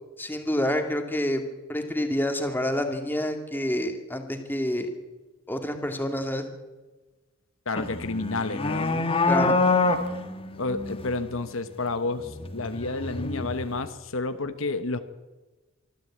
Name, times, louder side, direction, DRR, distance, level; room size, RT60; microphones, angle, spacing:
voice 1, 0.2-1.4 1.7-4.9 5.5-6.5 9.3-9.6, left 1 dB, 10° left, 5 dB, 2.3 m, -28 dB
voice 2, 7.7-8.9 10.6-15.0, left 3 dB, 70° left, 10 dB, 1.1 m, -30 dB
sound 1, 7.8-11.2 12.3-13.9, left 3 dB, 25° left, 1.6 m, -26 dB
24.0 x 13.5 x 8.7 m, 1.2 s
head